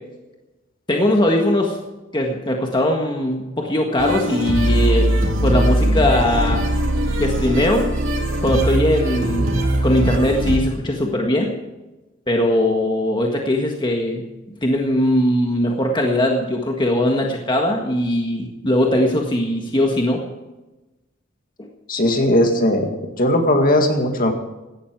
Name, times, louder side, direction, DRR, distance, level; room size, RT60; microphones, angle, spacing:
voice 1, 0.9-1.8 2.1-5.1 5.4-6.6 7.2-7.9 8.4-11.5 12.3-14.2 14.6-20.2, left 1 dB, 25° left, 1 dB, 1.6 m, -20 dB
sound 1, 4.0-10.6, right 1 dB, 70° right, 3.3 m, -20 dB
voice 2, 21.9-24.3, left 1 dB, 45° left, 4 dB, 2.1 m, -18 dB
17.0 x 12.5 x 4.7 m, 1.0 s
head